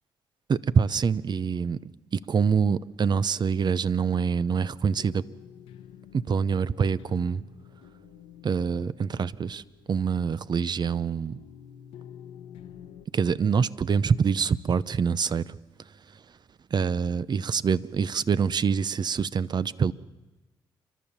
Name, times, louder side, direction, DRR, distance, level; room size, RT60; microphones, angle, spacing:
voice 1, 0.5-1.8 2.1-5.2 6.1-7.4 8.4-9.6 9.9-11.4 13.1-15.4 16.7-19.9, right 6 dB, 50° right, 17 dB, 0.7 m, -25 dB
sound 1, 4.7-13.1, left 9 dB, 80° left, 1.1 m, -49 dB
29.5 x 12.0 x 7.3 m, 1.1 s
supercardioid pair, 50°, 10 cm